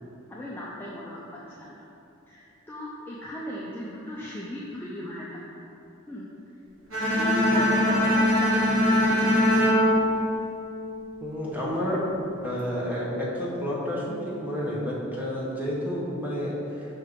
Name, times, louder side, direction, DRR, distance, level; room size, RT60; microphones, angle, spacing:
voice 1, 0.3-1.8 2.3-5.4 6.1-6.3 7.1-9.4, equal, 10° left, -6 dB, 0.5 m, -37 dB
Bowed string instrument, 6.9-11.1, left 1 dB, 70° right, 1.2 m, -22 dB
voice 2, 11.2-12.0 12.4-17.0, equal, 10° right, -5 dB, 1.0 m, -30 dB
5.5 x 5.3 x 3.6 m, 2.9 s
head